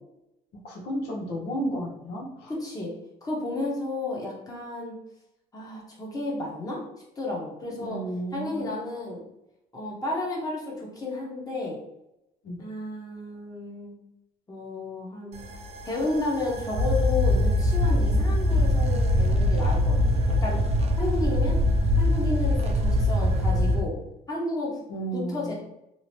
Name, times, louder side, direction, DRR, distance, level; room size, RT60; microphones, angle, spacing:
voice 1, 0.6-2.5 7.8-8.7 12.4-12.6 24.9-25.5, right 1 dB, 80° left, -1 dB, 0.9 m, -32 dB
voice 2, 2.5-2.9 3.2-4.9 5.5-6.8 7.2-8.0 8.3-9.2 9.7-11.8 12.6-13.9 14.5-15.4 15.8-20.6 21.0-21.6 22.0-23.9 24.3-24.8 25.1-25.5, left 2 dB, 20° left, -3 dB, 0.9 m, -32 dB
sound 1, 15.3-23.8, left 1 dB, 40° right, 0.4 m, -23 dB
2.7 x 2.1 x 3.0 m, 0.87 s
cardioid pair, 110°, 17 cm